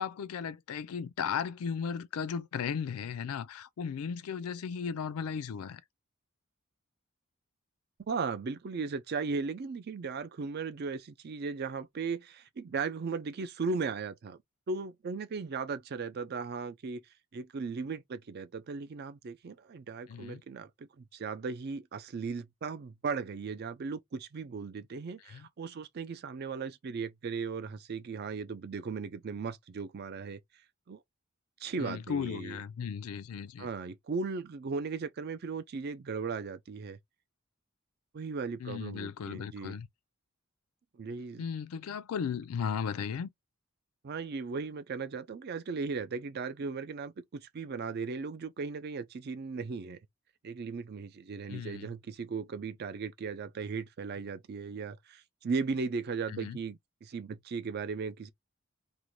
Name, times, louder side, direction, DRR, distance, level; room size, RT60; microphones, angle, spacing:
voice 1, 0.0-5.8 20.1-20.4 25.3-25.5 31.8-33.7 38.6-39.9 41.4-43.3 51.5-51.9 56.3-56.6, left 6 dB, 85° left, 0.4 m, -36 dB
voice 2, 8.1-14.4 14.7-17.0 17.3-30.4 30.9-31.0 31.6-32.6 33.6-37.0 38.1-39.8 40.9-41.4 44.0-50.0 50.4-58.3, right 4 dB, 45° right, 0.4 m, -37 dB
2.5 x 2.1 x 3.0 m
head